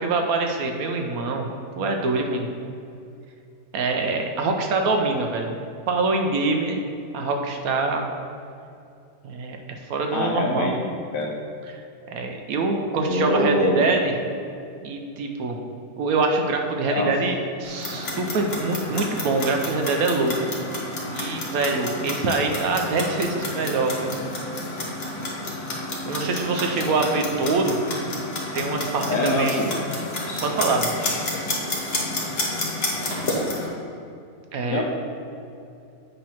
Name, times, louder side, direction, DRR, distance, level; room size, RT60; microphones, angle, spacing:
voice 1, 0.0-1.5 1.8-2.5 3.7-5.5 5.9-6.8 7.1-8.1 9.2-9.6 9.9-10.7 12.1-14.1 14.8-15.6 16.0-20.3 21.1-24.1 26.0-27.8 28.5-29.6 30.4-30.9 34.5-34.8, right 3 dB, 65° right, 3 dB, 1.0 m, -24 dB
voice 2, 10.1-10.7 11.1-11.3 13.0-13.9 16.8-17.1 29.1-29.7 34.6-34.8, left 1 dB, 90° left, 0 dB, 1.5 m, -23 dB
Clock, 17.6-33.7, left 2 dB, 40° left, 1.2 m, -30 dB
8.3 x 3.0 x 5.6 m, 2.6 s
omnidirectional pair, 1.7 m